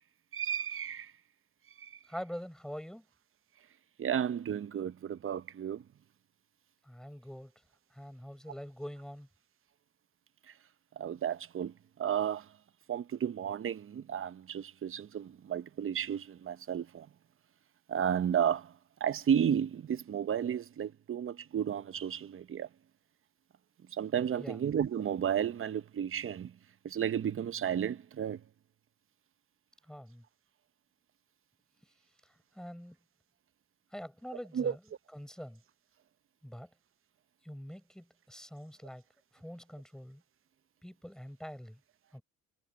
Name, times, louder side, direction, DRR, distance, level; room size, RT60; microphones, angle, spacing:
voice 1, 0.3-1.1 1.8-1.9 4.0-5.8 11.0-11.7 12.0-12.4 12.9-17.1 17.9-18.7 19.0-22.7 23.9-26.5 26.8-28.4 34.5-34.7, right 9 dB, 45° right, 0.8 m, -32 dB
voice 2, 2.1-3.0 6.9-7.5 7.9-9.3 24.4-24.6 29.9-30.2 32.5-33.0 33.9-34.8 35.1-35.6 36.4-36.7 37.4-39.0 39.3-40.2 40.8-41.8 42.1-42.2, equal, ahead, 5.8 m, -44 dB
cardioid pair, 90°, 30 cm